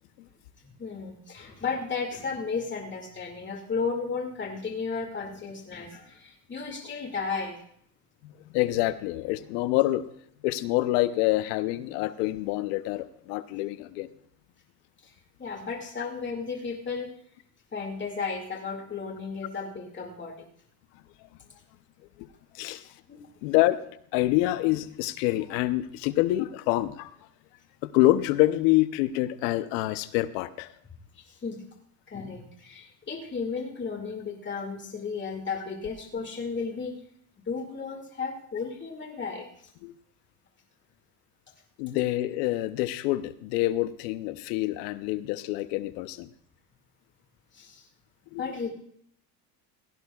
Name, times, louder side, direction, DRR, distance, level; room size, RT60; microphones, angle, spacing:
voice 1, 0.8-7.6 15.0-17.1 17.7-20.3 23.1-23.3 31.1-31.6 32.1-36.9 37.5-39.5 47.5-47.8 48.4-48.7, left 5 dB, 20° left, 1 dB, 2.4 m, -34 dB
voice 2, 8.2-10.0 10.4-14.1 22.2-22.3 22.5-22.8 23.4-23.8 24.1-27.1 27.8-30.7 39.8-39.9 41.8-46.3 48.3-48.4, left 16 dB, 75° left, 13 dB, 0.9 m, -26 dB
17.0 x 16.5 x 2.4 m, 0.66 s
supercardioid pair, 90°, 49 cm